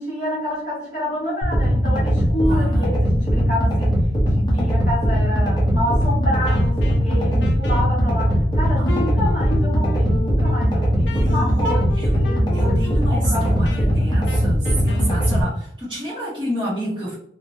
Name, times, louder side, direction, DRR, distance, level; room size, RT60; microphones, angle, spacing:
voice 1, 0.0-4.0 4.2-14.1, left 1 dB, 45° left, -7 dB, 1.2 m, -28 dB
sound 1, 1.4-15.4, equal, 25° left, 0.7 m, -19 dB
voice 2, 2.4-2.9 8.8-9.0 11.0-12.2 12.5-17.2, equal, 25° right, -10 dB, 0.8 m, -30 dB
Wind instrument woodwind instrument, 6.4-15.4, left 3 dB, 85° left, 0.4 m, -37 dB
3.0 x 2.1 x 2.6 m, 0.66 s
head